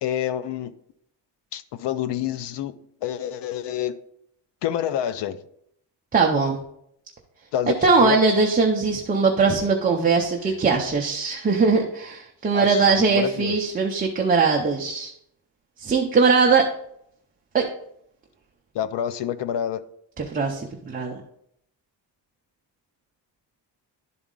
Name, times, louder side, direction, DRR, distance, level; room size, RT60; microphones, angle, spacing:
voice 1, 0.0-0.7 1.5-2.7 3.0-4.0 4.6-5.4 7.5-8.2 12.5-13.6 18.7-19.8, left 10 dB, 80° left, 0.6 m, -27 dB
voice 2, 6.1-6.6 7.8-15.1 15.8-16.7 17.5-17.6 20.2-21.2, right 4 dB, 20° right, 0.5 m, -20 dB
11.0 x 4.0 x 3.7 m
cardioid pair, 175°, 42 cm